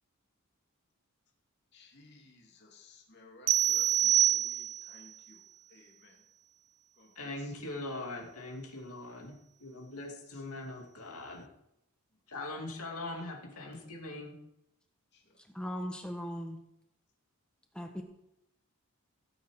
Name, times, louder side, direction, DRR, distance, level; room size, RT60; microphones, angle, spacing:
voice 1, 1.7-6.2 6.9-8.4 10.0-10.6 13.8-14.0 15.1-15.4, left 2 dB, 50° left, -1 dB, 2.7 m, -59 dB
sound 1, 3.5-5.0, right 11 dB, 85° right, 0.5 m, -26 dB
voice 2, 7.2-11.5 12.3-14.3, left 2 dB, 85° left, 0 dB, 2.7 m, -41 dB
voice 3, 15.5-16.6 17.7-18.0, equal, 5° left, 4 dB, 1.4 m, -38 dB
17.5 x 8.5 x 5.0 m, 0.84 s
head